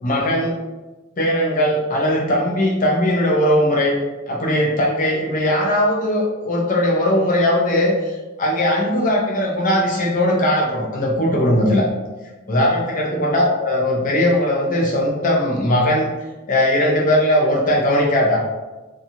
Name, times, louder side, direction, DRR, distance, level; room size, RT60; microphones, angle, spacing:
voice 1, 0.0-0.6 1.2-4.0 4.3-11.8 12.5-16.1 16.5-18.4, left 1 dB, 40° left, -2 dB, 0.5 m, -19 dB
2.7 x 2.3 x 2.9 m, 1.1 s
head